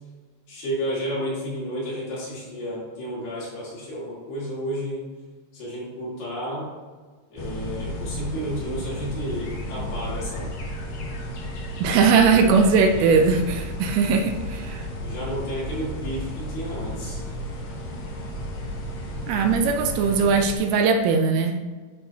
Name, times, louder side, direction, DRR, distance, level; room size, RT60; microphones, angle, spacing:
voice 1, 0.5-5.0 5.5-6.7 7.3-10.5 10.8-11.0 12.1-12.7 15.0-17.2, equal, 60° left, -8 dB, 3.7 m, -32 dB
sound 1, 7.4-20.5, equal, 90° left, 1.5 m, -33 dB
voice 2, 11.8-14.9 19.3-21.8, right 5 dB, 85° right, 5 dB, 2.4 m, -20 dB
11.0 x 3.7 x 2.8 m, 1.4 s
omnidirectional pair, 4.6 m